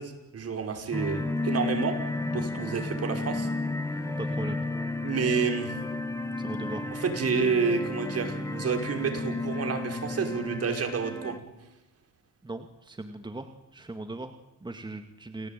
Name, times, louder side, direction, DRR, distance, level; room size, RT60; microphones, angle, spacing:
voice 1, 0.0-2.0 2.3-3.5 5.0-5.7 6.9-11.3, right 5 dB, 55° right, 5 dB, 5.5 m, -29 dB
sound 1, 0.9-11.4, left 2 dB, 10° left, 2.4 m, -32 dB
voice 2, 4.2-4.6 6.4-6.9 12.4-15.5, right 2 dB, 15° right, 7 dB, 2.3 m, -39 dB
29.5 x 19.0 x 9.2 m, 0.96 s
cardioid pair, 90°, 30 cm